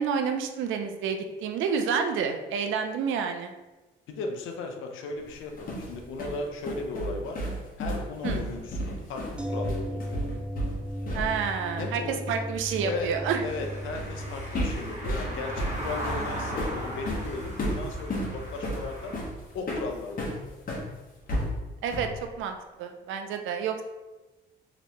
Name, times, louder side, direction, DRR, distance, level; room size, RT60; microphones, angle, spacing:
voice 1, 0.0-3.5 8.2-8.4 11.1-13.4 21.8-22.1 22.4-23.8, right 6 dB, 80° right, 6 dB, 0.4 m, -29 dB
voice 2, 4.1-7.4 7.8-10.2 11.8-12.4 12.8-13.1 13.4-19.1 19.5-20.6, left 3 dB, 80° left, 3 dB, 0.6 m, -36 dB
sound 1, 5.3-11.5 11.8-12.0 13.9-14.2 14.5-20.9 21.3-22.2, equal, 45° left, 1.0 m, -33 dB
sound 2, 9.4-19.2 19.5-19.6, equal, 5° right, 0.3 m, -38 dB
Car passing by / Engine, 12.5-19.3, right 1 dB, 35° right, 1.3 m, -37 dB
3.2 x 3.0 x 2.9 m, 1.1 s
cardioid pair, 90°, 20 cm